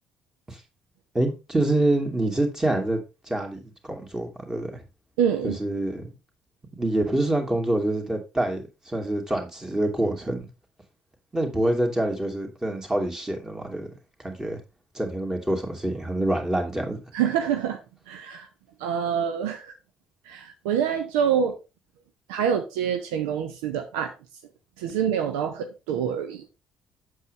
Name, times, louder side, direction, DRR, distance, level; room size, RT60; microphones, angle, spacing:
voice 1, 1.1-3.0 3.3-4.8 5.4-6.2 6.8-10.5 11.3-13.9 14.2-14.6 14.9-17.0, right 1 dB, 15° right, 2.4 m, -26 dB
voice 2, 5.2-5.6 17.1-17.8 18.1-18.5 18.8-19.8 20.3-21.6 22.3-24.1 24.8-26.6, right 8 dB, 70° right, 0.7 m, -26 dB
8.1 x 6.5 x 3.3 m
figure-of-eight pair, 45°, 4 cm